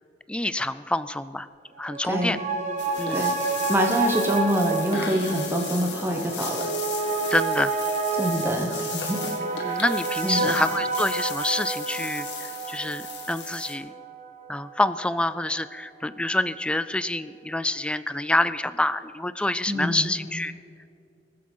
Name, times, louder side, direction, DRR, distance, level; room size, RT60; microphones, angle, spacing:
voice 1, 0.3-1.5 1.8-2.4 3.0-3.3 7.3-7.7 9.6-13.9 14.5-20.5, left 1 dB, 5° left, 15 dB, 0.3 m, -27 dB
sound 1, 1.8-14.6 15.0-15.1, right 4 dB, 45° right, 1.3 m, -29 dB
voice 2, 2.0-2.4 3.1-3.4 3.7-6.7 7.0-7.3 8.1-9.2 9.5-9.8 10.2-10.5 19.7-20.1, equal, 15° right, 2 dB, 1.2 m, -26 dB
sound 2, 2.8-13.7, left 5 dB, 85° left, 1.8 m, -37 dB
21.5 x 7.6 x 5.6 m, 2.6 s
head